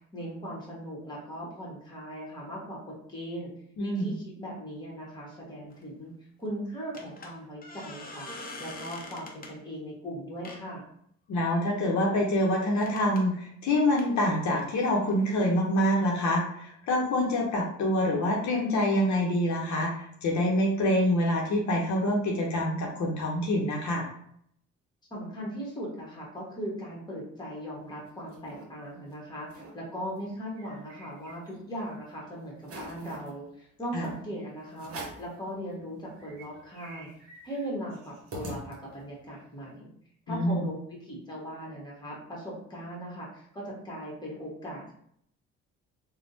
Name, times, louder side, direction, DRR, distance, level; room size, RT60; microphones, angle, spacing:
voice 1, 0.1-3.5 3.8-10.8 25.1-37.1 37.4-39.9 40.3-44.9, equal, 15° left, -4 dB, 1.2 m, -39 dB
voice 2, 3.8-4.1 11.3-24.0 33.9-34.1 40.3-40.6, left 1 dB, 70° left, -1 dB, 0.7 m, -26 dB
sound 1, 5.7-5.9 6.9-9.5 10.4-10.6 11.3-11.8 12.8-13.2 14.0-15.5, left 2 dB, 30° left, 0.6 m, -44 dB
sound 2, 27.8-28.7 29.1-29.2 29.4-29.8 30.2-31.7 32.1-32.2 32.6-33.3 34.0-34.2 34.8-35.3 35.8-35.9 36.1-39.1, right 1 dB, 50° right, 0.9 m, -44 dB
3.4 x 2.2 x 2.6 m, 0.68 s
cardioid pair, 90°, 30 cm